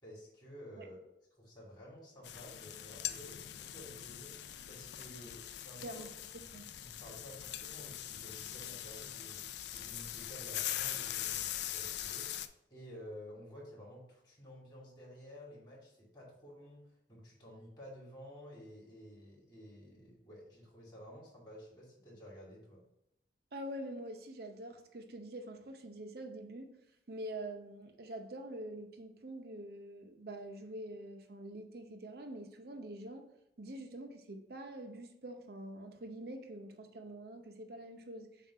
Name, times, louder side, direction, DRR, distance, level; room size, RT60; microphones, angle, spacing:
voice 1, 0.0-1.0 1.4-4.4 4.7-6.1 6.8-22.8, equal, 25° left, 2.2 m, -52 dB
sound 1, 2.2-12.5, left 11 dB, 65° left, 0.3 m, -42 dB
voice 2, 23.5-26.7 27.1-33.2 33.6-38.3, right 1 dB, 55° right, 0.7 m, -45 dB
7.3 x 2.5 x 5.6 m
head